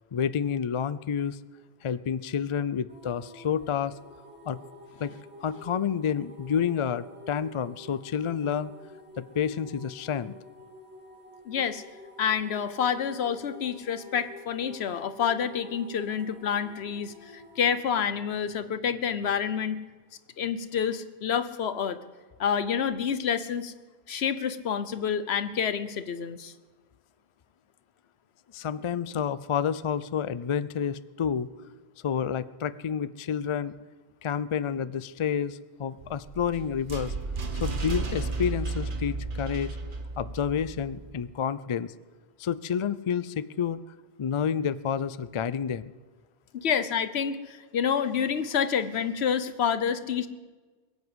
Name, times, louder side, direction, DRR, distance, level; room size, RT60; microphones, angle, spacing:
voice 1, 0.1-1.4 1.8-4.0 4.5-4.6 5.0-5.1 5.4-8.7 9.2-10.4 28.5-31.5 32.0-33.7 34.2-37.1 37.6-39.8 40.2-41.9 42.4-43.8 44.2-45.9, left 7 dB, 45° left, 16 dB, 0.4 m, -29 dB
sound 1, 2.9-18.1, left 1 dB, 10° right, 2.5 m, -49 dB
voice 2, 11.5-11.8 12.2-19.8 20.4-22.0 22.4-23.7 24.1-26.5 46.5-50.3, left 7 dB, 80° left, 13 dB, 1.1 m, -28 dB
sound 2, 36.0-41.1, right 3 dB, 50° right, 1.4 m, -33 dB
22.0 x 7.9 x 8.0 m, 1.3 s
omnidirectional pair, 1.1 m